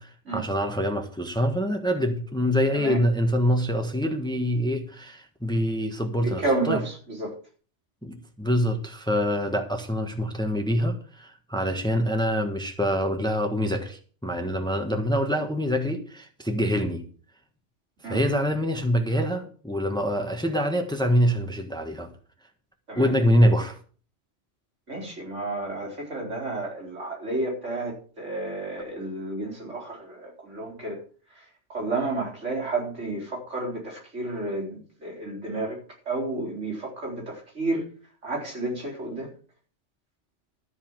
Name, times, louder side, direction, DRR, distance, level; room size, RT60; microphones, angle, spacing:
voice 1, 0.0-6.8 8.0-17.1 18.0-22.1 22.9-23.8, equal, 5° left, 5 dB, 1.4 m, -25 dB
voice 2, 6.2-7.4 18.0-18.2 22.9-23.1 24.9-31.0 31.3-35.8 36.1-37.8 38.2-39.3, right 2 dB, 80° right, -2 dB, 4.5 m, -31 dB
13.0 x 5.7 x 7.3 m, 0.41 s
omnidirectional pair, 1.2 m